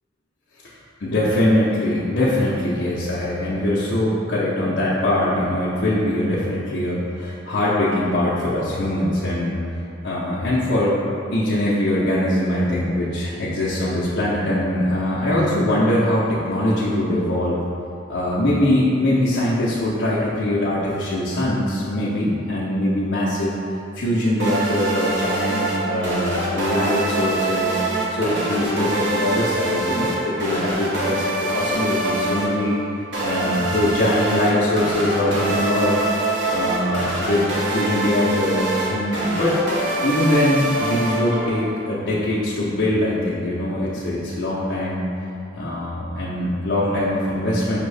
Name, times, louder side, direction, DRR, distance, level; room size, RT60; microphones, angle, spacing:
voice 1, 1.0-9.6 10.0-11.0 11.3-17.6 18.1-23.6 23.9-27.8 28.1-32.8 33.2-36.0 36.5-39.6 40.0-45.0 45.5-47.8, left 1 dB, 70° left, -10 dB, 0.6 m, -22 dB
sound 1, 24.4-41.8, right 2 dB, 65° right, 0.8 m, -25 dB
5.0 x 2.7 x 3.3 m, 2.8 s
head